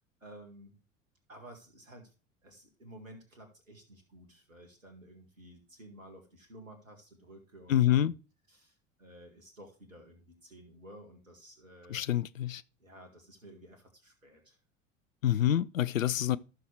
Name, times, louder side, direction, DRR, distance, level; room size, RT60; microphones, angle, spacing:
voice 1, 0.2-0.8 1.3-2.1 2.4-8.1 8.5-12.0 12.8-14.6, right 1 dB, 85° right, 2.0 m, -53 dB
voice 2, 7.7-8.1 11.9-12.6 15.2-16.4, left 11 dB, 80° left, 0.5 m, -27 dB
13.5 x 6.2 x 3.3 m
figure-of-eight pair, 70°, 39 cm